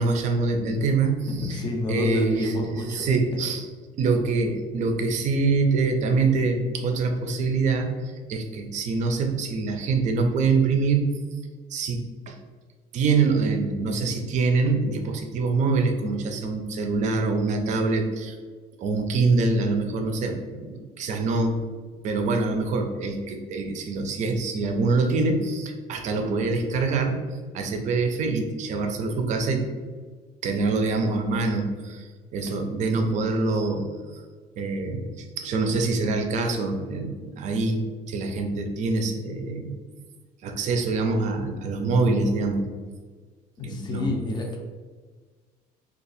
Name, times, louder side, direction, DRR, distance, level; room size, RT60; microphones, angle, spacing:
voice 1, 0.0-1.6 1.9-2.5 2.9-3.7 4.0-11.2 11.7-12.4 12.9-18.4 18.8-21.6 22.0-29.7 30.4-34.2 34.6-39.7 40.4-42.6 43.6-44.1, right 3 dB, 50° right, 4 dB, 0.5 m, -25 dB
voice 2, 1.3-3.1 43.6-44.6, left 2 dB, 25° left, 1 dB, 0.5 m, -28 dB
2.7 x 2.3 x 4.0 m, 1.5 s
cardioid pair, 160°, 16 cm